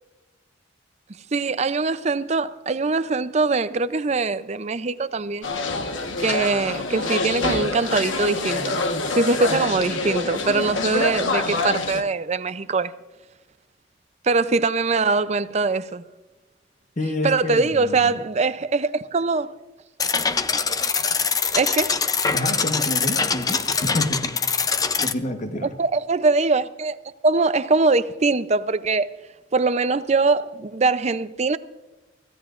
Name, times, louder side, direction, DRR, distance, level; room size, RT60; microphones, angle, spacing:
voice 1, 1.3-5.5 6.2-8.8 9.1-12.9 14.2-16.0 17.2-19.5 21.5-22.0 25.6-27.0 27.2-29.1 29.5-31.6, right 3 dB, 35° right, 0.5 m, -22 dB
sound 1, 5.4-12.0, left 3 dB, 85° left, 1.3 m, -26 dB
voice 2, 17.0-18.1 22.3-24.4 25.0-25.7, left 1 dB, 40° left, 1.2 m, -28 dB
sound 2, 20.0-25.1, left 5 dB, 20° left, 0.5 m, -23 dB
26.0 x 16.0 x 2.5 m
head